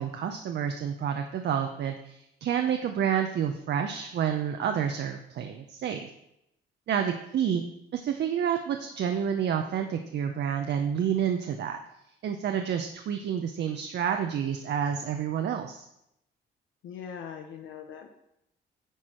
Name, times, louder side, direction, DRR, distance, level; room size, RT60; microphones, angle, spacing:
voice 1, 0.0-6.1 6.9-7.6 7.9-11.8 12.2-15.8, right 8 dB, 60° right, 5 dB, 0.6 m, -29 dB
voice 2, 7.1-7.6 16.8-18.1, left 7 dB, 75° left, 3 dB, 0.7 m, -42 dB
9.2 x 4.5 x 4.4 m, 0.81 s
cardioid pair, 90°, 20 cm